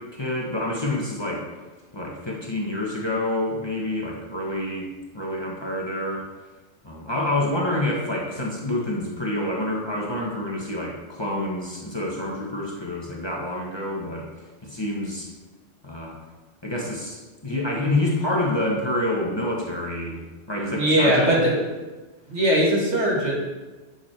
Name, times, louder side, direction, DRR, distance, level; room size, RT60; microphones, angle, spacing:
voice 1, 0.0-1.5 1.9-6.3 6.8-14.3 14.6-15.3 15.8-16.2 16.6-20.2 20.5-21.5, left 1 dB, 25° left, -3 dB, 1.7 m, -27 dB
voice 2, 20.8-21.5 22.3-23.3, right 1 dB, 75° right, -4 dB, 2.8 m, -20 dB
9.9 x 7.0 x 4.5 m, 1.2 s
omnidirectional pair, 1.1 m